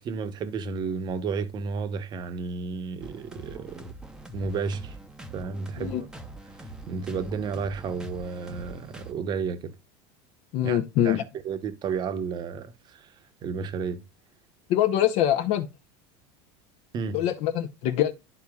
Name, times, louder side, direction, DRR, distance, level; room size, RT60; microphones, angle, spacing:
voice 1, 0.0-3.8 4.3-5.0 5.3-6.0 6.9-9.7 10.6-10.8 11.0-13.1 13.4-14.0 16.9-17.2, right 5 dB, 30° right, 0.9 m, -32 dB
sound 1, 3.0-9.1, right 2 dB, 5° right, 0.7 m, -43 dB
voice 2, 10.5-11.2 14.7-15.7 17.1-18.1, left 11 dB, 50° left, 0.7 m, -24 dB
12.0 x 4.1 x 2.3 m
supercardioid pair, 150°, 14 cm